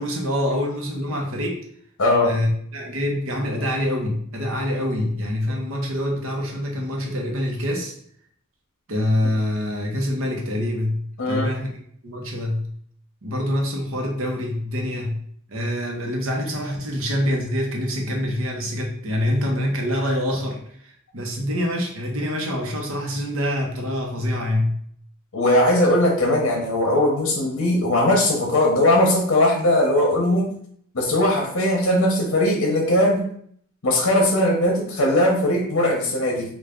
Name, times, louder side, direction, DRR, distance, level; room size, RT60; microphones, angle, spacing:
voice 1, 0.0-1.6 2.2-7.9 8.9-11.8 12.0-12.7 13.2-15.2 15.5-24.7, left 1 dB, 65° right, 1 dB, 0.9 m, -25 dB
voice 2, 2.0-2.3 11.2-11.5 25.3-30.5 30.9-33.3 33.8-36.5, left 1 dB, 60° left, 1 dB, 0.7 m, -19 dB
3.3 x 2.4 x 3.6 m, 0.63 s
head